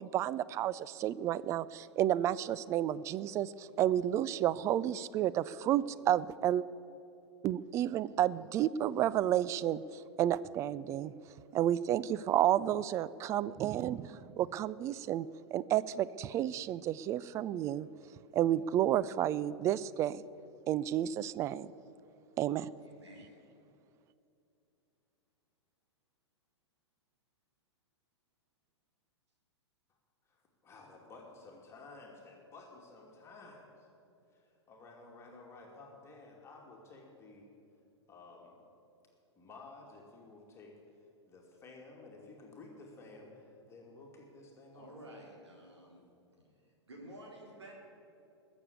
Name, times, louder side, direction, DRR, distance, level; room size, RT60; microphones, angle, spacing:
voice 1, 0.0-6.6 7.4-11.1 11.5-17.9 18.3-20.2 20.7-21.7 22.4-22.7, right 11 dB, 20° right, 18 dB, 0.3 m, -31 dB
voice 2, 22.8-23.3 44.7-46.0 46.9-47.7, right 1 dB, 70° right, -2 dB, 3.7 m, -51 dB
voice 3, 30.6-33.7 34.7-37.5 38.1-38.6 39.4-40.7 41.3-44.9, left 3 dB, 20° left, -1 dB, 2.4 m, -53 dB
20.5 x 7.1 x 8.3 m, 2.8 s
figure-of-eight pair, 100°, 15 cm